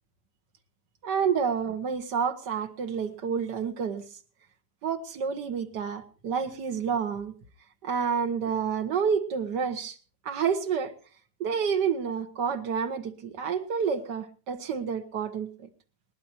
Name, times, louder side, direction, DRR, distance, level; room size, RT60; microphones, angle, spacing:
voice 1, 1.0-4.0 4.8-7.3 7.8-10.0 10.3-10.9 11.4-15.7, right 6 dB, 85° right, 2.0 m, -29 dB
21.5 x 19.0 x 2.8 m
omnidirectional pair, 1.8 m